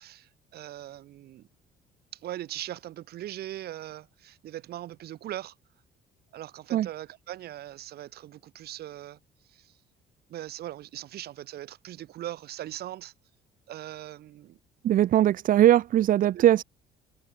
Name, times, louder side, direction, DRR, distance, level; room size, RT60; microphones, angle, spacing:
voice 1, 0.0-1.5 2.1-5.5 6.3-9.2 9.5-9.8 10.3-13.1 13.7-14.6 16.3-16.4, right 13 dB, 70° right, 6.7 m, -40 dB
voice 2, 14.8-16.6, right 12 dB, 55° right, 0.7 m, -20 dB
cardioid pair, 110°, 17 cm